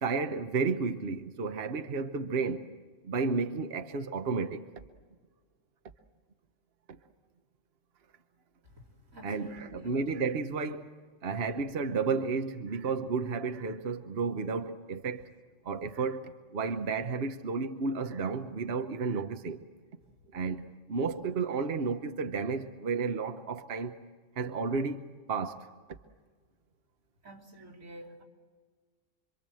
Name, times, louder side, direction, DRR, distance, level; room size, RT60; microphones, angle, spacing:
voice 1, 0.0-2.6 3.0-4.6 6.9-7.0 9.2-10.9 11.2-15.2 15.6-19.6 20.3-23.9 24.4-25.7, right 4 dB, 55° right, 1.1 m, -32 dB
voice 2, 8.8-10.0 27.2-28.2, right 1 dB, 90° right, 3.6 m, -49 dB
26.5 x 25.0 x 7.6 m
omnidirectional pair, 1.3 m